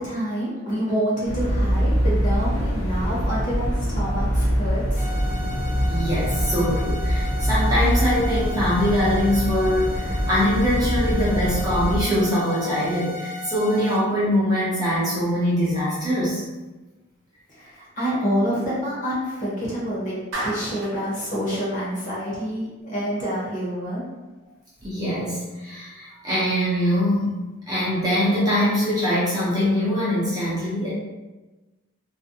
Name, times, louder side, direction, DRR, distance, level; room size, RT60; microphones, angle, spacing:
voice 1, 0.0-5.1 17.5-20.1 20.4-24.0, equal, 35° left, -8 dB, 0.9 m, -27 dB
sound 1, 1.2-12.0, equal, 80° left, 0.7 m, -24 dB
sound 2, 5.0-14.0, left 2 dB, 55° left, 1.2 m, -36 dB
voice 2, 5.9-16.4 24.8-27.3 27.7-30.9, equal, 20° right, -8 dB, 0.6 m, -23 dB
Clapping, 20.3-21.0, right 1 dB, 70° right, 0.7 m, -30 dB
2.4 x 2.2 x 2.7 m, 1.1 s
head